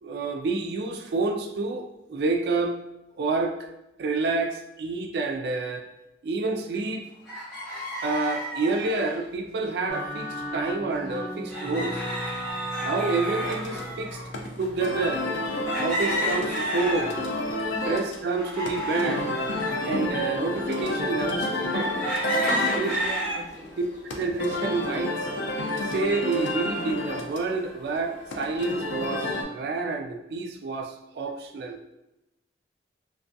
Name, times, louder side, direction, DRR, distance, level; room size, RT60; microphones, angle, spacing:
voice 1, 0.0-2.8 3.2-3.5 4.0-5.9 6.2-7.1 8.0-12.0 12.8-14.2 14.6-15.2 15.8-17.2 17.9-19.3 19.8-21.9 22.8-23.0 24.1-25.1 25.9-31.8, right 3 dB, 65° right, 4 dB, 0.3 m, -28 dB
sound 1, 7.3-9.2 10.4-10.5 10.8-10.9 11.5-14.3 14.9-15.0 15.7-17.4 17.9-19.8 20.4-20.5 21.7-23.4 23.9-24.4, equal, ahead, 0.9 m, -31 dB
sound 2, 9.9-15.6, equal, 50° left, 0.7 m, -36 dB
sound 3, 13.4-29.4, left 1 dB, 85° left, 0.4 m, -31 dB
voice 2, 22.2-23.7, left 1 dB, 20° left, -4 dB, 0.4 m, -38 dB
2.3 x 2.3 x 2.5 m, 0.89 s
head